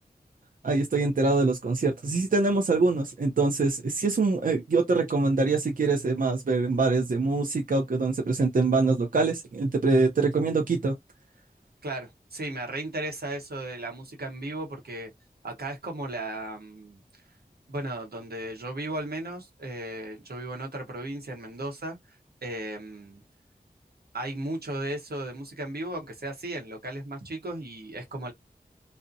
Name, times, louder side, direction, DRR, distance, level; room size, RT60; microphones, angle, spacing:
voice 1, 0.6-10.9, right 3 dB, 60° right, 0.5 m, -24 dB
voice 2, 11.8-15.1 15.4-17.0 17.7-22.0 22.4-23.2 24.1-28.3, right 1 dB, 80° right, 0.9 m, -35 dB
2.7 x 2.0 x 2.4 m
wide cardioid pair, 50°, 16 cm